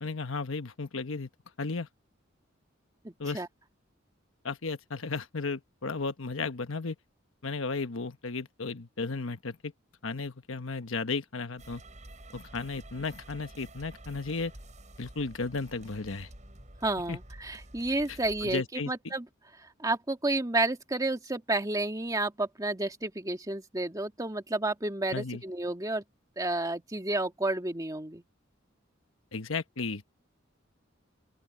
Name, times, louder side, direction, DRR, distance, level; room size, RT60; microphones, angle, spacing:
voice 1, 0.0-1.3 1.6-1.9 3.2-3.4 4.4-7.0 7.4-9.7 10.0-11.8 12.3-14.5 15.0-16.3 17.1-17.2 18.1-18.9 25.1-25.4 29.3-30.1, left 4 dB, 75° left, 1.2 m, -34 dB
voice 2, 3.0-3.5 16.8-19.3 19.6-26.0 26.4-28.2, right 2 dB, 15° right, 1.9 m, -31 dB
sound 1, 11.6-18.6, right 1 dB, 35° right, 6.5 m, -50 dB
open air
head